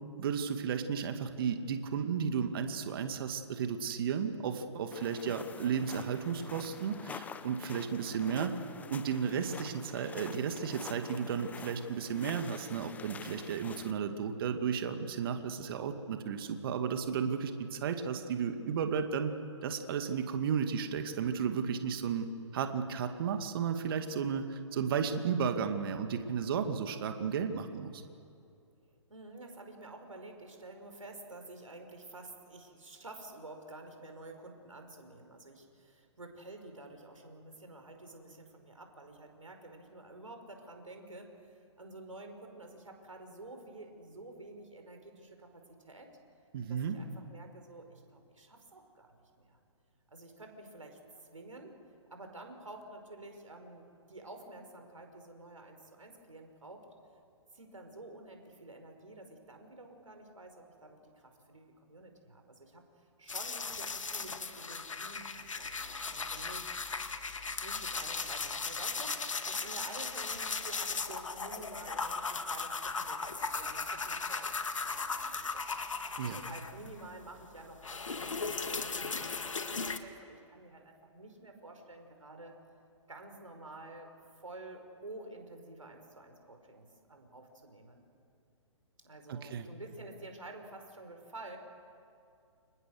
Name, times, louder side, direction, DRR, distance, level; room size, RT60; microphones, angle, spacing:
voice 1, 0.2-8.5 8.9-19.3 19.6-22.3 22.5-28.0 46.5-47.0 76.2-76.4 89.3-89.7, right 7 dB, 45° right, 7 dB, 2.4 m, -33 dB
sound 1, 4.9-13.9, left 6 dB, 10° left, 0.8 m, -47 dB
voice 2, 29.1-46.1 46.7-49.6 50.1-51.0 51.3-51.7 52.1-56.9 57.5-62.8 63.2-66.8 67.6-74.5 74.8-75.8 76.4-82.5 83.1-84.1 84.4-88.1 89.0-91.6, right 2 dB, 80° right, 4 dB, 5.4 m, -50 dB
sound 2, 63.3-77.1 77.4-80.0, left 4 dB, 75° left, 2.0 m, -37 dB
29.5 x 27.0 x 6.6 m, 2.5 s
figure-of-eight pair, 130°, 16 cm